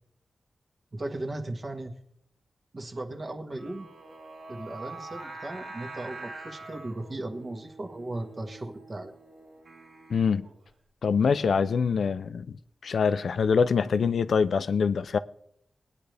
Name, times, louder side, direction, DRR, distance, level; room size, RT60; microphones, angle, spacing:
voice 1, 0.9-1.9 2.7-3.9 4.5-9.1, right 2 dB, 40° right, 1.4 m, -37 dB
Singing, 3.6-10.7, right 3 dB, 85° right, 2.0 m, -45 dB
voice 2, 10.1-10.5 11.0-12.6 12.8-15.2, left 6 dB, 80° left, 0.5 m, -24 dB
19.5 x 9.2 x 3.4 m
wide cardioid pair, 110°, 0 cm